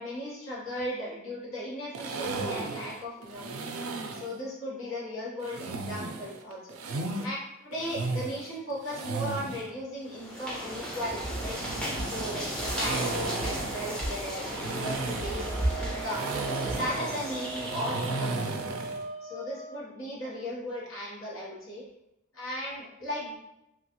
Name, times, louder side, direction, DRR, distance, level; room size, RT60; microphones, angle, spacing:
voice 1, 0.0-3.7 4.1-11.6 12.0-16.3 16.7-18.8 19.2-21.8 22.3-23.4, equal, 70° left, -6 dB, 1.1 m, -37 dB
sound 1, 1.9-4.3 5.4-7.3 7.7-9.7 11.1-19.0, right 3 dB, 85° right, 0.4 m, -35 dB
sound 2, 10.1-18.5, equal, 5° left, 0.5 m, -34 dB
Wind instrument woodwind instrument, 15.4-19.8, right 3 dB, 90° left, 1.1 m, -41 dB
3.1 x 2.3 x 2.9 m, 0.87 s
head